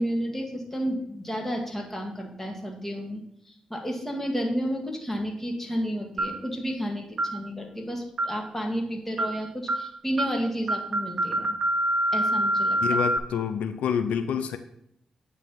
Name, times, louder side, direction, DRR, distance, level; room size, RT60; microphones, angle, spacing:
voice 1, 0.0-11.5 12.1-12.8, equal, 15° left, 1 dB, 1.8 m, -31 dB
sound 1, 6.2-6.5 7.2-7.4 8.2-8.5 9.2-9.4 9.7-9.9 10.2-10.4 10.7-13.2, right 1 dB, 55° right, 0.6 m, -26 dB
voice 2, 12.8-14.6, left 7 dB, 85° left, 9 dB, 0.4 m, -27 dB
9.1 x 3.3 x 5.5 m, 0.75 s
cardioid pair, 60°, 2 cm